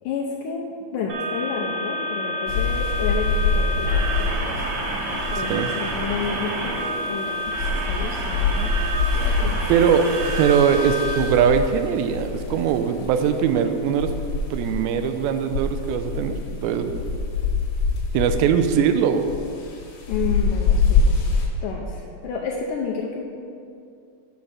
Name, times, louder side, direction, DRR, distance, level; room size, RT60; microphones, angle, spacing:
voice 1, 0.0-4.7 5.0-8.7 9.1-9.8 10.7-10.9 20.1-21.0 21.6-23.2, left 5 dB, 80° left, -2 dB, 2.1 m, -31 dB
sound 1, 1.1-11.1, right 1 dB, 70° right, 1.3 m, -29 dB
sound 2, 2.5-21.5, left 4 dB, 65° left, 2.2 m, -26 dB
voice 2, 5.4-5.7 9.7-14.1 14.5-16.9 18.1-19.3, right 7 dB, 90° right, 8 dB, 2.4 m, -21 dB
8.3 x 5.3 x 6.0 m, 2.5 s
omnidirectional pair, 4.2 m